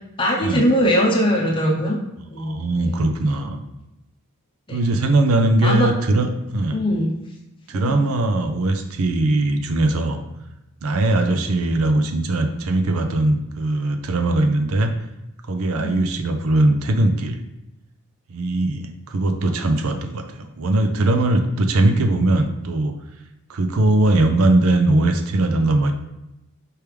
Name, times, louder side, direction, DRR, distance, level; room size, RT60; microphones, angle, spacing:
voice 1, 0.2-2.0 2.3-2.6 2.9-3.1 4.7-4.8 5.6-5.9 6.7-7.1 7.7-8.0 11.4-11.6 15.7-16.1, equal, 25° left, -1 dB, 0.8 m, -21 dB
voice 2, 2.4-3.6 4.7-6.3 6.5-6.8 7.7-10.2 10.8-14.9 15.5-17.4 18.3-22.9 23.5-25.9, right 2 dB, 70° right, 7 dB, 0.5 m, -20 dB
4.6 x 3.4 x 3.3 m, 0.92 s
head